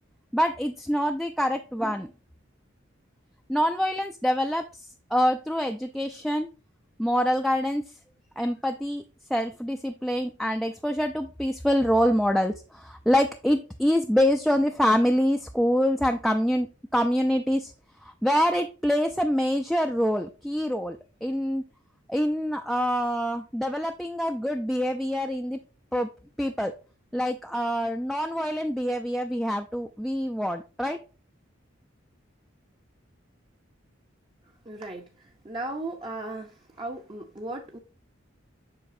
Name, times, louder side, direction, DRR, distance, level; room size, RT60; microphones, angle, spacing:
voice 1, 0.3-2.1 3.5-4.8 5.1-6.5 7.0-7.8 8.4-9.0 9.3-16.7 16.9-17.7 18.0-21.6 22.1-25.6 25.9-26.1 26.4-26.7 27.1-31.0, equal, ahead, 4 dB, 0.3 m, -25 dB
voice 2, 34.7-35.0 35.4-36.5 36.8-37.8, right 2 dB, 25° right, 2 dB, 0.7 m, -35 dB
7.8 x 5.8 x 2.6 m, 0.33 s
head